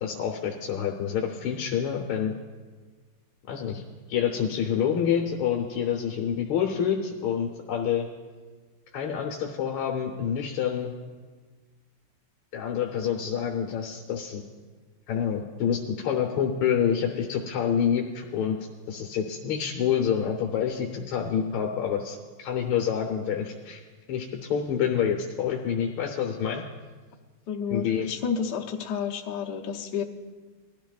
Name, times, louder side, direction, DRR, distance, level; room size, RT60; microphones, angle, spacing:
voice 1, 0.0-2.3 3.5-3.8 4.1-8.1 8.9-10.9 12.5-14.4 15.1-18.6 18.9-23.8 24.1-26.6 27.7-28.1, left 8 dB, 75° left, 0 dB, 1.7 m, -27 dB
voice 2, 27.5-30.0, left 7 dB, 60° left, 0 dB, 1.3 m, -30 dB
20.0 x 13.0 x 2.4 m, 1.4 s
omnidirectional pair, 2.4 m